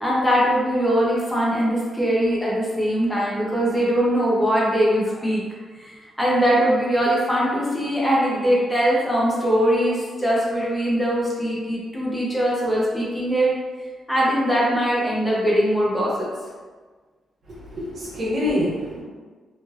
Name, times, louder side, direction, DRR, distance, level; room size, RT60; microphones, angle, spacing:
voice 1, 0.0-5.4 5.7-13.5 14.1-16.3, equal, 10° left, -6 dB, 0.7 m, -21 dB
voice 2, 17.5-19.0, left 1 dB, 60° right, -9 dB, 1.2 m, -26 dB
3.1 x 2.6 x 2.4 m, 1.4 s
cardioid pair, 90°, 0 cm